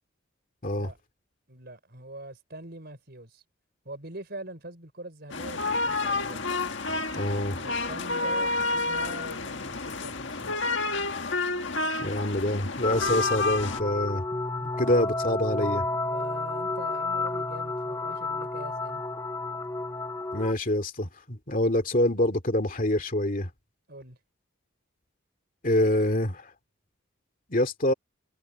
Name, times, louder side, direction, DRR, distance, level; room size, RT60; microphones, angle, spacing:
voice 1, 1.5-3.4 3.8-6.5 7.5-10.6 14.5-14.7 16.0-19.0 23.9-24.2, right 1 dB, 50° right, 4.9 m, -43 dB
sound 1, 5.3-13.8, left 3 dB, 60° left, 1.7 m, -29 dB
voice 2, 7.1-7.6 12.0-14.2 14.8-15.9 20.3-23.5 25.6-26.5 27.5-27.9, left 1 dB, 40° left, 2.6 m, -26 dB
sound 2, 12.8-20.5, left 3 dB, 15° left, 0.8 m, -31 dB
head